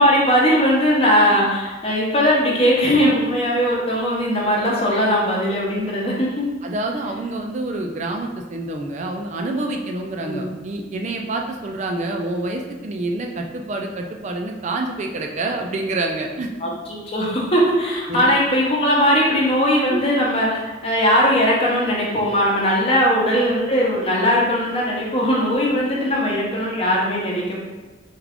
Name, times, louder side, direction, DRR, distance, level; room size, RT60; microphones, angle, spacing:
voice 1, 0.0-6.4 10.2-10.5 16.6-27.5, equal, 30° left, -4 dB, 0.7 m, -19 dB
voice 2, 6.6-16.5 18.1-18.3 19.9-20.0 22.9-23.0 26.0-26.1, right 2 dB, 35° right, 2 dB, 0.3 m, -27 dB
3.5 x 2.3 x 3.5 m, 1.2 s
head